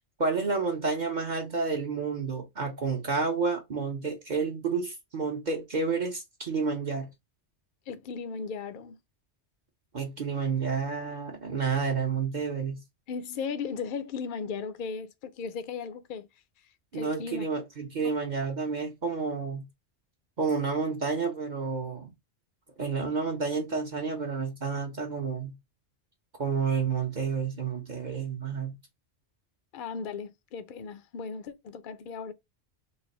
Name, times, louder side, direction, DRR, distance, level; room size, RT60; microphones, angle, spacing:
voice 1, 0.2-7.1 9.9-12.8 16.9-19.6 20.4-22.1 22.8-25.5 26.4-28.8, right 5 dB, 45° right, 0.8 m, -30 dB
voice 2, 7.9-9.0 13.1-16.3 16.9-17.5 29.7-32.3, left 5 dB, 55° left, 0.6 m, -36 dB
3.2 x 2.5 x 4.0 m
omnidirectional pair, 1.2 m